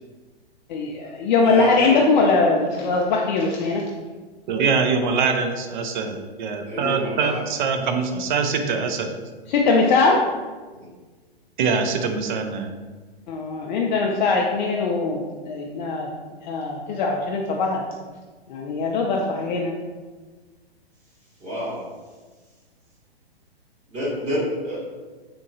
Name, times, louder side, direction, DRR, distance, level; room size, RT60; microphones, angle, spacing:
voice 1, 0.7-3.8 9.5-10.2 13.3-15.2 15.5-16.1 16.4-17.8 18.5-19.7, left 3 dB, 50° left, -1 dB, 0.4 m, -21 dB
voice 2, 1.4-1.9 6.7-7.4 21.4-21.8 23.9-24.4 24.6-24.8, equal, 25° right, -8 dB, 1.1 m, -28 dB
voice 3, 4.5-9.1 11.6-12.7, right 5 dB, 50° right, 6 dB, 0.5 m, -23 dB
3.6 x 2.9 x 2.7 m, 1.3 s
hypercardioid pair, 125°, 31 cm